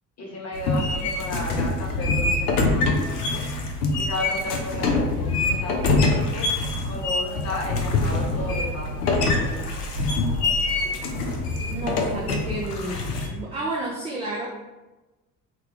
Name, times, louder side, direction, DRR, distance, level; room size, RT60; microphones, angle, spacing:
voice 1, 0.2-3.4 3.9-9.7 9.9-10.6, left 2 dB, 35° left, -3 dB, 1.2 m, -34 dB
sound 1, 0.5-13.3, left 3 dB, 85° left, 0.6 m, -24 dB
voice 2, 11.7-14.5, right 2 dB, 15° right, -4 dB, 0.5 m, -31 dB
3.6 x 2.2 x 3.3 m, 1.1 s
figure-of-eight pair, 55°, 46 cm